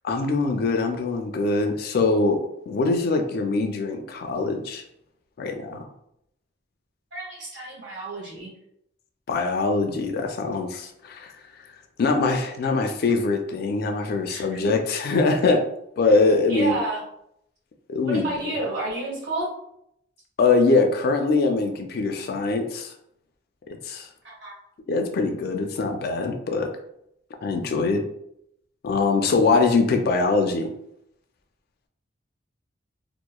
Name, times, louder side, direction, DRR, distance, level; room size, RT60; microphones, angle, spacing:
voice 1, 0.0-2.4 2.7-4.8 5.4-5.8 9.3-11.3 12.0-15.6 16.0-16.8 17.9-18.3 20.4-22.9 23.8-24.1 24.9-26.7 27.4-28.0 28.8-30.7, left 3 dB, 55° left, 5 dB, 0.3 m, -23 dB
voice 2, 7.1-8.5 14.3-14.7 16.0-16.2 16.5-17.0 18.0-19.5 24.2-24.5, right 2 dB, 70° right, -5 dB, 1.4 m, -31 dB
2.8 x 2.0 x 2.2 m, 0.75 s
head